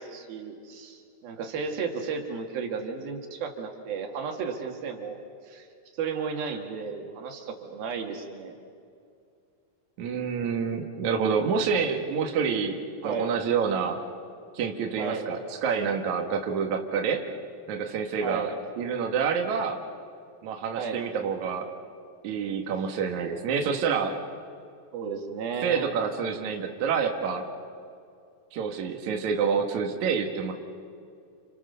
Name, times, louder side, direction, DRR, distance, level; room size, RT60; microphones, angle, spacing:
voice 1, 0.0-5.7 6.0-8.6 13.0-13.4 15.0-15.3 18.2-18.6 20.8-21.0 24.9-25.9, right 5 dB, 80° right, 3 dB, 3.9 m, -34 dB
voice 2, 10.0-14.0 14.5-17.2 17.7-18.5 18.8-19.8 20.4-21.7 22.2-24.2 25.6-27.4 28.5-30.5, right 6 dB, 60° right, 3 dB, 2.9 m, -27 dB
29.5 x 29.0 x 6.9 m, 2.4 s
omnidirectional pair, 4.2 m